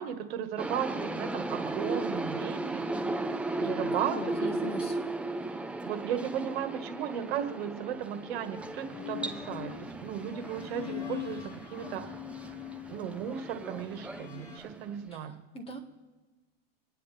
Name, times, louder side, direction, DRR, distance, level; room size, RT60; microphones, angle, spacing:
voice 1, 0.0-2.8 3.6-4.8 5.8-12.2 12.9-15.4, right 9 dB, 75° right, 7 dB, 1.6 m, -35 dB
sound 1, 0.6-15.1, right 2 dB, 5° right, 0.5 m, -36 dB
voice 2, 3.9-5.0 15.1-15.8, left 1 dB, 20° left, 3 dB, 1.7 m, -40 dB
sound 2, 6.2-7.2 8.0-14.6, left 12 dB, 45° left, 2.9 m, -43 dB
27.0 x 9.8 x 3.4 m, 1.2 s
supercardioid pair, 135°, 30 cm